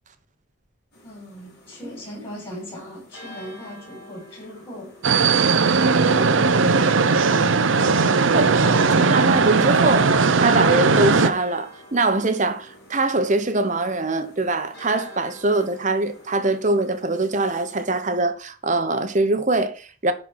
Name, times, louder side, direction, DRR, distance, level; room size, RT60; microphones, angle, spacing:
sound 1, 0.9-17.9, equal, 50° left, 5.9 m, -47 dB
voice 1, 1.0-4.9 7.9-8.1 8.6-8.8, left 1 dB, 25° left, 5.1 m, -38 dB
sound 2, 5.0-11.3, right 4 dB, 70° right, 0.7 m, -18 dB
voice 2, 9.0-20.1, right 2 dB, 35° right, 1.0 m, -23 dB
10.5 x 4.6 x 5.7 m
head